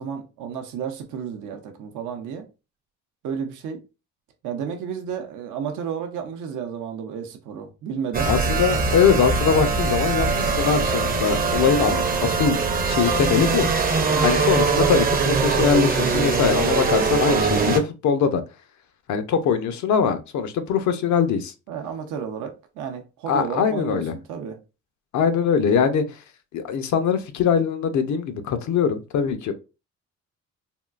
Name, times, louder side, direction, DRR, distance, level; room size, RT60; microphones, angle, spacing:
voice 1, 0.0-2.5 3.2-3.8 4.4-8.3 14.1-14.3 21.7-24.6, right 7 dB, 80° right, 0.6 m, -32 dB
sound 1, 8.1-17.8, right 4 dB, 30° right, 0.5 m, -22 dB
voice 2, 8.3-12.6 12.9-13.7 14.2-18.4 19.1-21.5 23.3-24.1 25.1-26.0 26.5-29.5, left 6 dB, 70° left, 0.6 m, -22 dB
3.6 x 2.3 x 2.4 m
cardioid pair, 90°, 30 cm